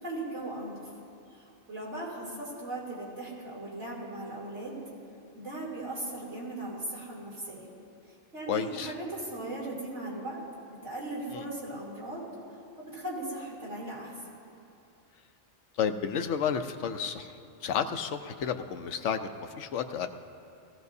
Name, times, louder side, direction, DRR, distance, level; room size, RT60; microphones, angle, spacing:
voice 1, 0.0-0.8 1.3-4.7 5.3-7.7 8.3-10.4 10.8-12.2 12.8-14.1, right 2 dB, 75° right, -6 dB, 3.3 m, -38 dB
voice 2, 8.5-8.9 11.3-11.5 15.8-20.1, left 7 dB, 80° left, 8 dB, 1.0 m, -31 dB
20.5 x 15.5 x 2.7 m, 2.6 s
omnidirectional pair, 1.2 m